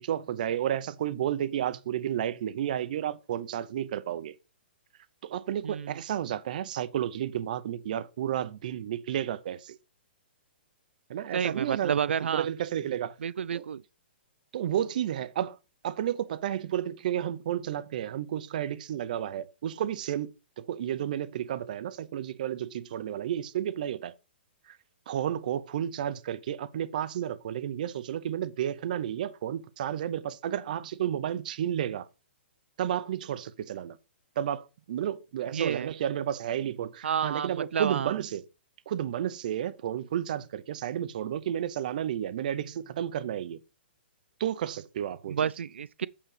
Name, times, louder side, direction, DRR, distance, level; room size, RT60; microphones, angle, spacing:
voice 1, 0.0-4.4 5.2-9.8 11.1-12.0 12.3-13.2 13.5-13.7 14.5-15.6 15.8-20.3 20.6-24.1 24.7-24.8 25.1-32.1 32.8-34.0 34.4-38.4 38.9-43.6 44.4-45.4, right 10 dB, 45° right, 0.7 m, -32 dB
voice 2, 5.6-6.0 11.3-12.5 13.2-13.8 35.5-35.9 37.0-38.1 45.3-46.1, right 8 dB, 90° right, 0.4 m, -30 dB
8.6 x 5.1 x 5.0 m
hypercardioid pair, 165°, 6 cm